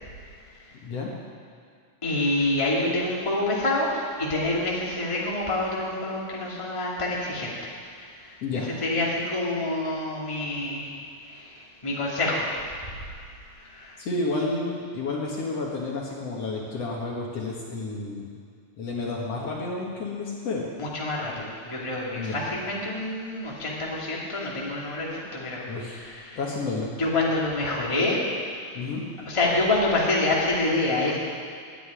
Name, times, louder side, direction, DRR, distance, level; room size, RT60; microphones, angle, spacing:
voice 1, 2.0-8.4 8.8-11.0 11.2-12.8 13.5-14.0 20.8-25.6 25.9-26.4 27.0-28.2 29.3-31.2, left 2 dB, 10° left, -5 dB, 2.2 m, -27 dB
voice 2, 14.0-18.3 18.8-20.6 22.2-22.4 25.7-26.0 26.4-26.9 28.7-29.0, left 3 dB, 55° left, -3 dB, 2.6 m, -30 dB
12.5 x 9.4 x 9.9 m, 2.2 s
omnidirectional pair, 3.5 m